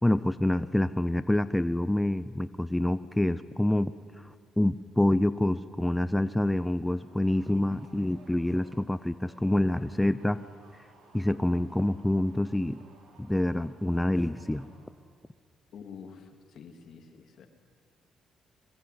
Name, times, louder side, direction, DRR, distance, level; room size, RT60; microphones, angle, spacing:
voice 1, 0.0-3.9 4.2-10.4 11.1-12.8 13.2-14.7, left 1 dB, 10° left, 13 dB, 0.7 m, -27 dB
sound 1, 6.8-15.2, right 3 dB, 80° right, 5.7 m, -59 dB
voice 2, 15.7-17.5, left 6 dB, 65° left, 6 dB, 3.1 m, -47 dB
23.5 x 22.5 x 9.6 m, 2.1 s
cardioid pair, 90°, 0 cm